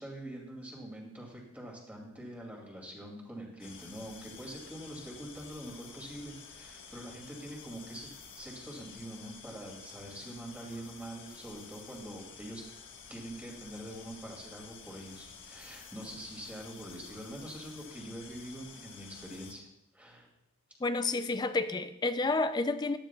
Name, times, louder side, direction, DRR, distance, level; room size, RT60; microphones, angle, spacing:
voice 1, 0.0-12.6 13.1-19.7 19.9-20.3, right 1 dB, 5° right, -1 dB, 2.4 m, -44 dB
sound 1, 3.6-19.5, left 5 dB, 55° left, 1.4 m, -51 dB
voice 2, 20.8-23.0, left 3 dB, 20° left, 10 dB, 0.3 m, -30 dB
14.0 x 12.0 x 2.3 m, 0.84 s
head